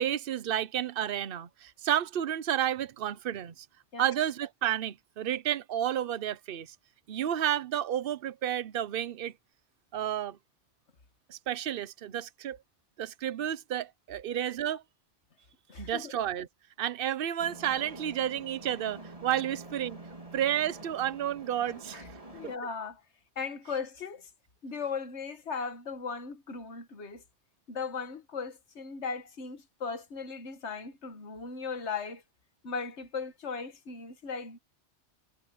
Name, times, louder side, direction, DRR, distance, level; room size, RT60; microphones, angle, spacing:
voice 1, 0.0-3.7 4.0-6.7 7.1-9.3 9.9-10.4 11.3-12.6 13.0-14.8 15.8-16.5 16.8-20.0 20.3-22.1, right 10 dB, 60° right, 0.9 m, -31 dB
voice 2, 15.7-16.1 21.9-22.0 22.3-23.0 23.3-24.3 24.6-27.2 27.7-32.2 32.6-34.6, left 5 dB, 90° left, 1.7 m, -37 dB
sound 1, 17.4-22.6, right 2 dB, 30° right, 3.2 m, -47 dB
omnidirectional pair, 1.1 m